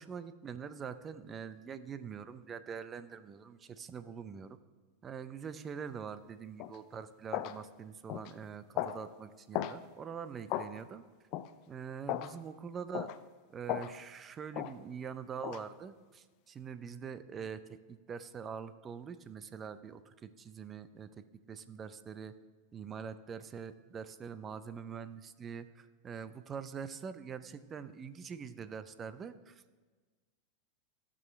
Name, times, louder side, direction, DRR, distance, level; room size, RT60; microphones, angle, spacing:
voice 1, 0.0-4.6 5.0-11.0 11.7-13.1 13.5-22.4 22.7-29.9, right 6 dB, 30° right, 13 dB, 0.6 m, -44 dB
sound 1, 6.6-6.8 7.3-7.6 8.1-8.3 8.8-9.0 9.5-9.8 10.5-10.7 11.3-11.5 12.1-12.3 12.9-13.2 13.7-13.9 14.5-14.7 15.4-15.6, left 13 dB, 50° left, 0.4 m, -36 dB
17.0 x 6.3 x 3.3 m, 1.3 s
hypercardioid pair, 100°, 0 cm